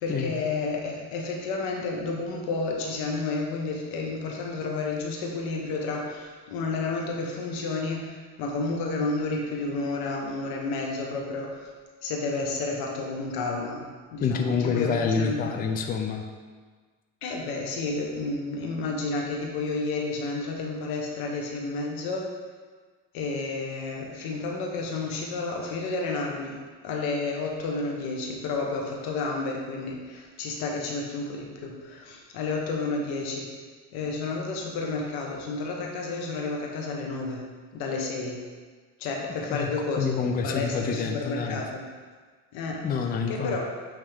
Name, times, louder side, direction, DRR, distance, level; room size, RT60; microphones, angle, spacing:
voice 1, 0.0-11.7 12.0-15.5 17.2-22.3 23.1-33.5 33.9-37.5 37.7-38.4 39.0-40.2 40.4-41.8 42.5-42.8 43.3-43.7, left 3 dB, 85° left, 0 dB, 1.2 m, -31 dB
voice 2, 14.2-16.2 39.5-39.7 40.0-41.6 42.8-43.7, left 5 dB, 25° left, 4 dB, 0.5 m, -27 dB
8.7 x 3.6 x 3.5 m, 1.5 s
cardioid pair, 130°, 35 cm